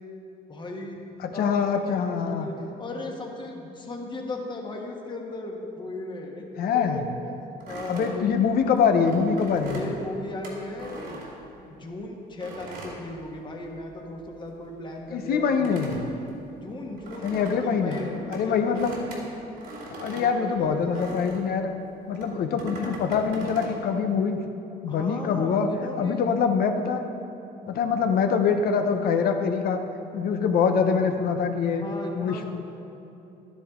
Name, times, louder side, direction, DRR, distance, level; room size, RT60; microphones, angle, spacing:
voice 1, 0.5-1.0 1.3-6.4 6.7-8.3 9.7-11.2 11.6-15.9 16.6-19.0 20.1-21.3 24.8-26.3 31.6-32.4, left 2 dB, 25° left, 0 dB, 1.4 m, -37 dB
voice 2, 1.2-2.5 6.6-7.0 7.9-9.8 15.1-16.0 17.2-18.0 18.3-18.9 19.9-21.7 22.1-24.4 24.8-25.7 26.0-27.0 27.7-29.8 30.1-31.8 32.2-32.4, left 6 dB, 65° left, 6 dB, 0.9 m, -24 dB
sound 1, 7.6-11.9 12.4-13.9 14.1-21.5 22.1-23.8, right 2 dB, 75° right, 2.6 m, -41 dB
11.5 x 10.0 x 3.7 m, 2.9 s
cardioid pair, 110°, 17 cm